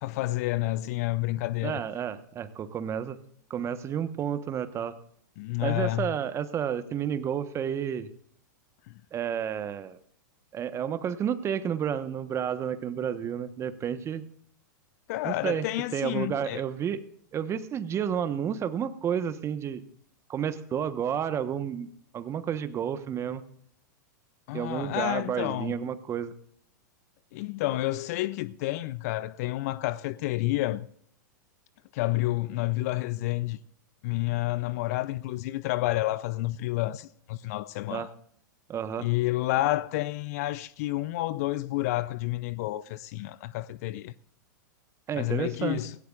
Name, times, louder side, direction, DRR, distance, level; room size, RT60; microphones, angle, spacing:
voice 1, 0.0-1.8 5.4-6.1 8.9-9.0 15.1-16.6 24.5-25.7 27.3-30.9 31.9-33.6 34.0-38.1 39.0-44.1 45.2-45.9, left 17 dB, 55° left, 0.5 m, -29 dB
voice 2, 1.6-3.2 3.5-5.0 5.6-8.1 9.1-10.0 10.5-14.2 15.2-15.6 15.9-17.1 17.3-19.8 20.3-21.9 22.1-23.4 24.5-26.3 37.9-38.1 38.7-39.1 45.1-45.8, right 8 dB, 25° right, 1.1 m, -31 dB
17.5 x 17.0 x 2.4 m
hypercardioid pair, 100°, 10 cm